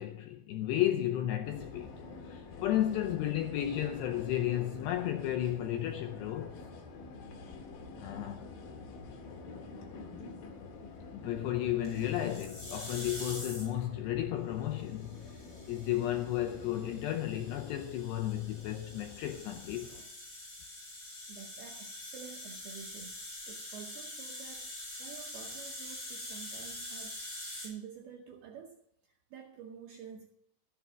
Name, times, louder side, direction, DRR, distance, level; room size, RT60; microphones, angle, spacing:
voice 1, 0.0-1.9 2.2-6.6 7.9-8.5 11.1-19.9, left 12 dB, 80° left, 2.4 m, -33 dB
sound 1, 1.4-20.0, left 3 dB, 60° left, 3.0 m, -48 dB
sound 2, 11.8-13.8 14.9-27.7, left 1 dB, 25° left, 6.2 m, -45 dB
voice 2, 21.3-28.8 29.3-30.3, right 8 dB, 80° right, 2.3 m, -49 dB
15.5 x 7.1 x 6.1 m
omnidirectional pair, 5.7 m